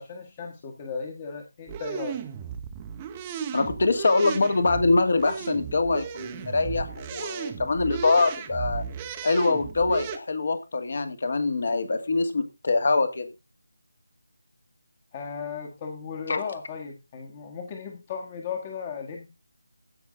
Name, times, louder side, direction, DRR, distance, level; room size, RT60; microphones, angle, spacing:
voice 1, 0.0-2.2 15.1-19.3, left 6 dB, 20° left, 3 dB, 1.6 m, -36 dB
sound 1, 1.7-10.2, right 8 dB, 15° right, 1.0 m, -35 dB
voice 2, 3.5-8.8 9.2-13.3 16.3-16.5, left 3 dB, 45° left, 8 dB, 2.1 m, -24 dB
16.0 x 6.0 x 3.8 m, 0.25 s
figure-of-eight pair, 160°, 0 cm